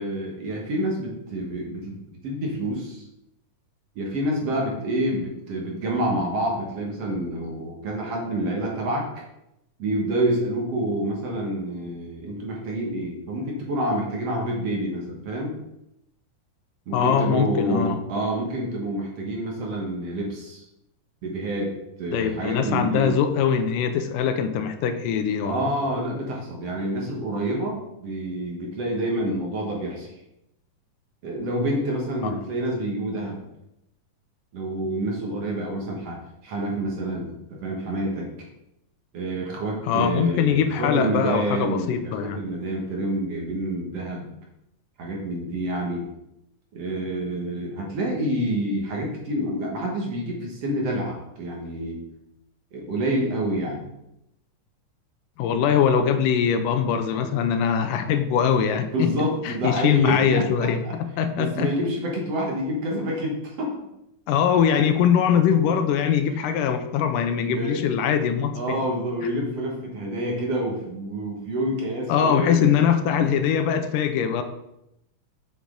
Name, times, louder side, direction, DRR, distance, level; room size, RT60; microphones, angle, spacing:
voice 1, 0.0-3.0 4.0-9.2 9.8-15.5 16.9-20.7 21.2-21.7 22.0-23.1 25.4-30.2 31.2-33.4 34.5-36.2 36.4-38.5 39.1-44.3 45.0-46.1 46.7-52.0 52.7-53.8 58.9-60.9 61.3-63.7 66.3-66.5 67.4-67.8 68.5-72.7, right 1 dB, 55° right, -1 dB, 2.2 m, -28 dB
voice 2, 16.9-18.0 22.1-25.7 32.2-32.5 39.8-42.4 55.4-59.1 59.5-61.7 64.3-68.8 72.1-74.4, left 8 dB, 85° left, 8 dB, 2.3 m, -22 dB
7.3 x 7.2 x 3.8 m, 0.84 s
omnidirectional pair, 3.7 m